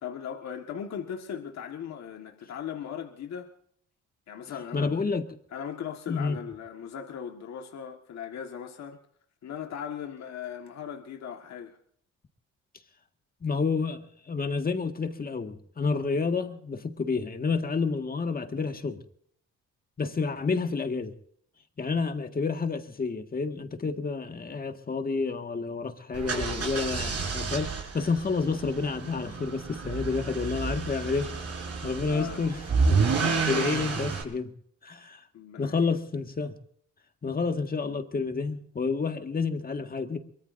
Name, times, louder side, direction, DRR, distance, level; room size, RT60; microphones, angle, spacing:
voice 1, 0.0-3.5 4.3-4.9 5.5-9.0 9.4-11.8 32.1-32.4 33.2-33.8 35.3-35.9, left 8 dB, 60° left, 1.7 m, -38 dB
voice 2, 4.7-5.3 6.1-6.4 13.4-19.0 20.0-21.1 21.8-31.3 31.8-33.0 33.5-34.5 34.8-35.2 35.6-36.5 37.2-40.2, left 4 dB, 30° left, 1.8 m, -29 dB
sound 1, 26.1-34.2, right 4 dB, 55° right, 5.7 m, -30 dB
23.5 x 23.0 x 2.6 m
cardioid pair, 90°, 30 cm